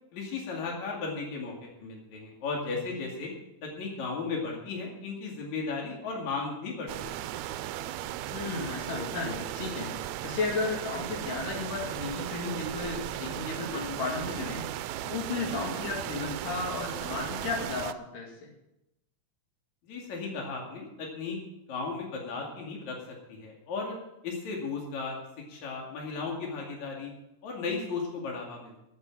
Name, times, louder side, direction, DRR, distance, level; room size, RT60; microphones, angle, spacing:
voice 1, 0.1-3.3 3.6-7.2 19.9-21.4 21.7-23.0 23.3-24.0 24.2-25.2 25.5-27.1 27.4-28.8, left 4 dB, 65° left, -1 dB, 3.6 m, -35 dB
sound 1, 6.9-17.9, right 13 dB, 80° right, 1.7 m, -36 dB
voice 2, 8.3-14.6 15.0-18.3, left 4 dB, 85° left, -1 dB, 4.1 m, -34 dB
14.0 x 7.4 x 7.3 m, 0.86 s
omnidirectional pair, 3.7 m